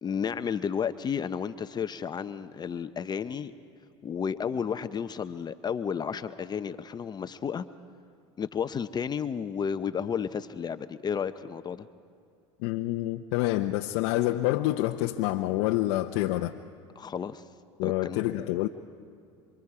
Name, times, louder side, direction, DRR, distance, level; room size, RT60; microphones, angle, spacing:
voice 1, 0.0-3.5 4.0-7.7 8.4-11.9 17.0-17.5 17.8-18.2, left 7 dB, 30° left, 11 dB, 0.7 m, -32 dB
voice 2, 12.6-16.6 17.8-18.7, left 16 dB, 70° left, 4 dB, 0.7 m, -27 dB
28.0 x 24.5 x 4.9 m, 2.4 s
supercardioid pair, 90°, 14 cm